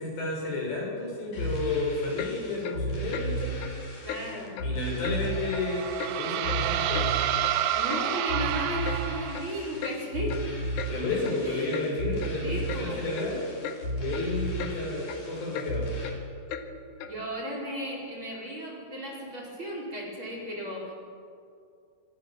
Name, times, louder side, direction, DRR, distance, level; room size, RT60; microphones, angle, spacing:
voice 1, 0.0-3.6 4.6-7.1 10.9-13.4 14.0-15.9, left 3 dB, 85° left, -2 dB, 8.7 m, -31 dB
sound 1, 1.3-16.1, right 1 dB, 50° left, 5.6 m, -34 dB
Clock, 2.2-2.3 2.6-2.8 3.1-3.3 3.6-3.7 4.1-4.2 4.6-4.7 5.0-5.2 5.5-5.7 6.0-6.1 6.5-7.1 7.4-7.5 7.9-8.0 8.4-8.5 8.9-9.0 9.3-9.5 9.8-10.0 10.3-10.5 10.8-10.9 11.2-11.4 11.7-11.9 12.2-12.3 12.7-12.8 13.2-13.3 13.6-13.8 14.1-14.3 14.6-14.8 15.0-15.2 15.5-15.7 16.0-16.2 16.5-16.7 17.0-17.1, left 8 dB, 70° left, 3.0 m, -37 dB
voice 2, 4.0-4.6 7.7-10.4 11.4-11.8 12.4-13.1 17.0-20.9, equal, 30° right, -2 dB, 5.4 m, -35 dB
sound 2, 5.3-9.6, right 12 dB, 75° right, 2.5 m, -29 dB
25.0 x 23.0 x 7.4 m, 2.4 s
omnidirectional pair, 4.9 m